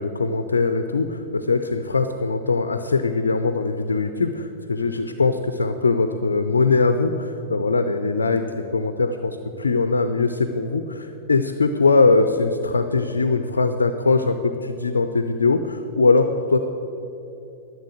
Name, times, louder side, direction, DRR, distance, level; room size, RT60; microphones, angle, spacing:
voice 1, 0.0-16.6, left 3 dB, 75° left, 8 dB, 0.6 m, -21 dB
12.5 x 7.0 x 8.1 m, 2.9 s
figure-of-eight pair, 95°, 0 cm